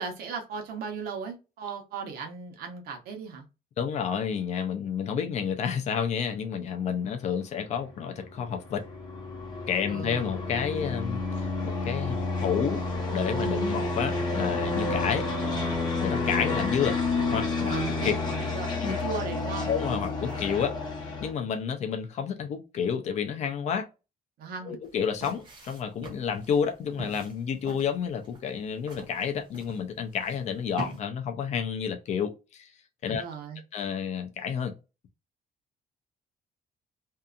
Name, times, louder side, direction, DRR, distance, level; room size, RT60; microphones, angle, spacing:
voice 1, 0.0-3.4 9.9-10.3 17.6-19.7 24.4-24.8 33.1-33.6, right 5 dB, 75° right, 0.9 m, -37 dB
voice 2, 3.8-8.8 9.7-12.8 13.1-15.3 16.0-17.0 17.3-18.1 18.8-19.0 19.7-20.8 21.2-23.9 24.7-32.7 33.0-33.2 33.7-34.8, left 7 dB, 45° left, 0.5 m, -30 dB
sound 1, 8.0-21.3, left 3 dB, 25° left, 1.1 m, -30 dB
sound 2, 24.8-31.0, right 2 dB, 30° right, 0.8 m, -44 dB
2.7 x 2.4 x 2.4 m
cardioid pair, 170°, 16 cm